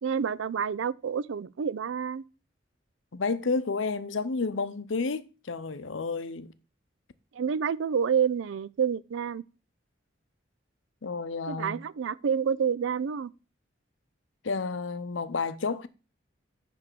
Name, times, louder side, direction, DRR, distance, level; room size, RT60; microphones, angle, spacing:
voice 1, 0.0-2.2 7.3-9.4 11.5-13.3, right 7 dB, 90° right, 0.4 m, -28 dB
voice 2, 3.1-6.5 11.0-11.8 14.4-15.9, left 4 dB, 90° left, 0.7 m, -31 dB
10.0 x 3.4 x 6.7 m
head